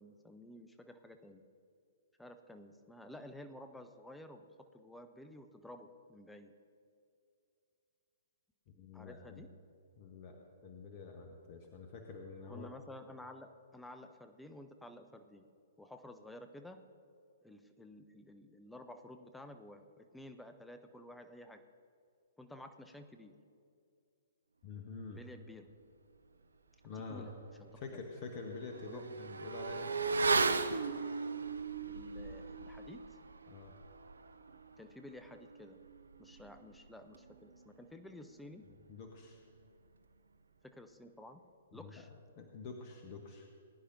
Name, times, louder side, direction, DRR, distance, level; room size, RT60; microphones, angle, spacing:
voice 1, 0.0-1.4 2.2-4.5 4.7-6.5 8.9-9.5 12.5-15.5 15.8-16.8 17.4-21.6 22.4-23.4 25.1-25.7 26.9-27.8 28.8-29.0 31.9-33.0 34.8-35.8 36.2-38.7 40.6-41.4 41.7-42.1, left 1 dB, 5° left, 7 dB, 0.7 m, -52 dB
voice 2, 8.8-9.4 10.0-12.7 24.6-25.3 26.8-27.3 27.8-29.9 33.5-33.7 38.9-39.4 41.7-41.9 42.4-43.5, left 4 dB, 35° left, 2 dB, 1.1 m, -47 dB
Motorcycle / Accelerating revving vroom, 27.1-27.2 27.6-37.6 37.9-38.0, right 4 dB, 75° right, 0.5 m, -38 dB
20.0 x 10.0 x 2.7 m, 2.4 s
figure-of-eight pair, 120°, 0 cm